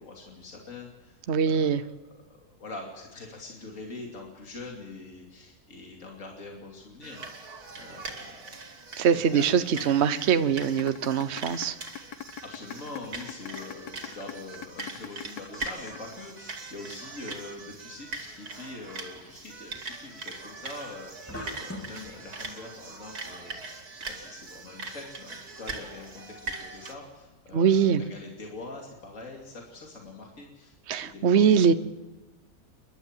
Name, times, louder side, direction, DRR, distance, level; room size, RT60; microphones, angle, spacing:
voice 1, 0.0-1.2 1.4-1.8 2.3-8.6 9.1-9.4 9.7-9.9 12.4-31.6, left 3 dB, 55° left, 0 dB, 3.1 m, -44 dB
voice 2, 1.3-1.8 9.0-11.8 27.5-28.0 30.9-31.7, right 7 dB, 50° right, 12 dB, 1.1 m, -22 dB
sound 1, 7.0-26.9, right 3 dB, 90° right, 2.8 m, -41 dB
sound 2, 10.6-16.6, left 10 dB, 90° left, 1.4 m, -40 dB
sound 3, 21.3-22.1, left 1 dB, 10° left, 2.8 m, -39 dB
29.0 x 12.0 x 7.5 m, 1.1 s
omnidirectional pair, 1.6 m